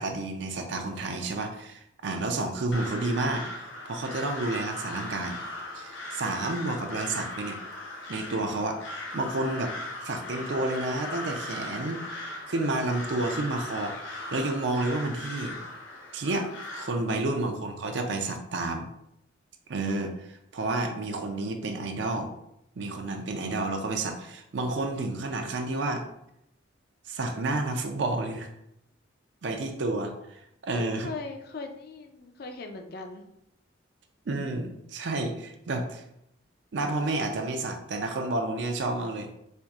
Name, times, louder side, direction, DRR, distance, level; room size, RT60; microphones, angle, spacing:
voice 1, 0.0-3.5 3.9-5.4 5.7-7.6 8.1-9.7 10.0-12.0 12.5-15.6 16.1-18.9 19.7-22.3 22.8-26.1 27.1-28.5 29.4-31.1 34.3-36.0 36.7-39.3, right 2 dB, 65° right, 5 dB, 0.5 m, -30 dB
Crow, 2.7-16.9, left 2 dB, 85° left, 0.7 m, -38 dB
voice 2, 30.7-33.2, left 3 dB, 55° left, 5 dB, 0.4 m, -40 dB
4.4 x 2.5 x 2.4 m, 0.80 s
head